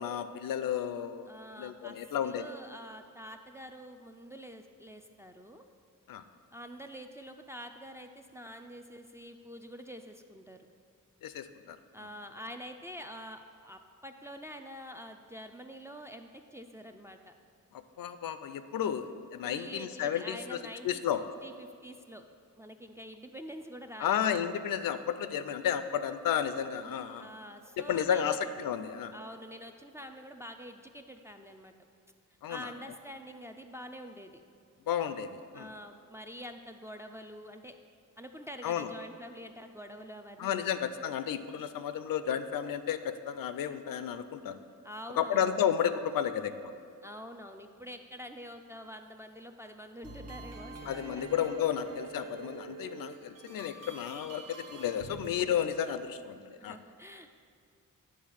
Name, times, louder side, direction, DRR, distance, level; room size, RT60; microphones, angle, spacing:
voice 1, 0.0-1.3 1.6-2.5 6.1-6.2 11.2-11.8 18.0-20.6 20.8-21.2 24.0-27.3 27.8-29.1 32.4-32.7 34.9-35.7 38.6-38.9 40.4-44.6 45.2-46.7 50.9-56.8, left 9 dB, 85° left, 11 dB, 0.5 m, -32 dB
voice 2, 1.3-2.0 2.2-5.7 6.5-10.6 11.9-17.3 19.4-21.0 21.4-22.3 22.6-24.2 27.2-28.4 29.1-31.7 32.5-34.4 35.5-37.8 38.2-40.7 44.8-45.6 47.0-51.3 56.6-57.3, equal, 10° right, 4 dB, 0.3 m, -46 dB
sound 1, 50.0-55.3, right 4 dB, 50° right, 0.7 m, -46 dB
9.3 x 3.7 x 6.3 m, 2.3 s
wide cardioid pair, 125°, 33 cm